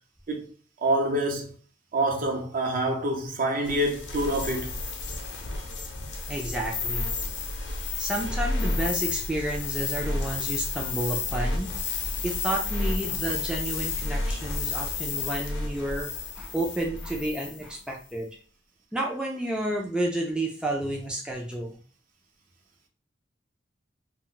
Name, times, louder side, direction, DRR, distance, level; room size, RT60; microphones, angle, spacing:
voice 1, 0.8-1.5 1.9-4.8, right 1 dB, 50° right, 0.6 m, -26 dB
sound 1, 3.6-17.7, left 3 dB, 70° left, 0.6 m, -31 dB
voice 2, 6.3-7.1 8.0-16.1 16.3-18.4 18.9-21.8, right 1 dB, 5° right, 0.3 m, -31 dB
2.2 x 2.0 x 3.8 m
head